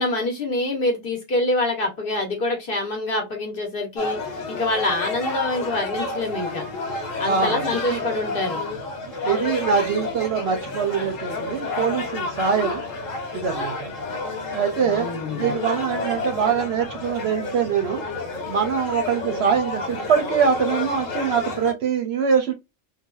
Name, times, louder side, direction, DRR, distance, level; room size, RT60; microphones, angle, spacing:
voice 1, 0.0-4.2 4.5-6.6 7.2-8.6 14.8-15.5, left 2 dB, 50° left, 1.0 m, -25 dB
sound 1, 4.0-21.7, left 3 dB, 80° left, 1.3 m, -30 dB
voice 2, 7.2-8.0 9.0-12.8 13.3-13.9 14.5-18.0 18.4-22.5, right 6 dB, 65° right, 0.7 m, -23 dB
3.2 x 2.2 x 2.3 m
omnidirectional pair, 1.3 m